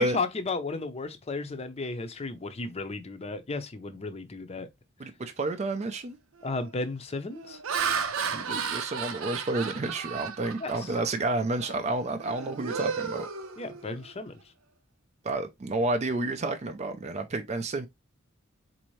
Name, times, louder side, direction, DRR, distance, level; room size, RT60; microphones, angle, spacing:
voice 1, 0.0-4.7 6.4-7.6 10.6-10.9 13.6-14.3, left 3 dB, 30° left, 0.6 m, -34 dB
voice 2, 5.0-6.2 8.3-13.3 15.2-17.9, right 2 dB, 35° right, 0.4 m, -30 dB
Laughter, 5.5-5.8 6.4-6.7 7.3-11.1 11.6-11.8 12.2-14.1, right 6 dB, 85° right, 0.6 m, -34 dB
4.2 x 2.7 x 3.0 m
head